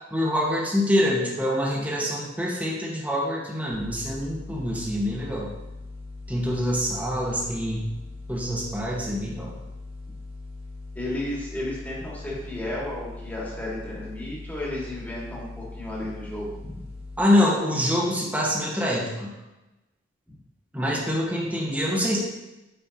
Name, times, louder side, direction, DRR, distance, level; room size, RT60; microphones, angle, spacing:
voice 1, 0.1-5.5 6.3-7.8 8.3-9.5 17.2-19.3 20.7-22.2, left 1 dB, 10° right, -3 dB, 1.5 m, -25 dB
sound 1, 3.7-17.2, left 2 dB, 35° right, 1.3 m, -40 dB
voice 2, 11.0-16.8, left 1 dB, 10° left, -5 dB, 2.0 m, -33 dB
8.7 x 5.5 x 2.9 m, 1.0 s
head